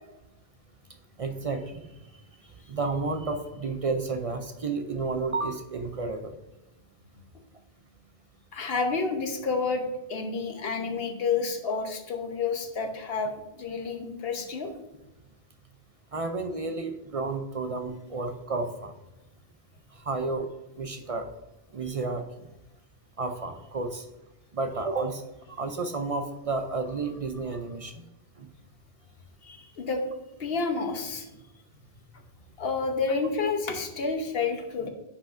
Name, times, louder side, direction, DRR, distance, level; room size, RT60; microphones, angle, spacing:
voice 1, 1.2-1.9 2.7-6.3 16.1-18.9 20.0-20.5 20.8-21.3 21.7-22.5 23.2-24.1 24.5-25.2 25.6-28.0 28.4-28.5 34.8-34.9, right 3 dB, 45° right, 6 dB, 0.5 m, -31 dB
voice 2, 8.5-14.7 29.4-30.0 30.4-31.3 32.6-34.9, left 4 dB, 70° left, 5 dB, 1.2 m, -29 dB
9.7 x 5.7 x 2.5 m, 1.0 s
omnidirectional pair, 1.0 m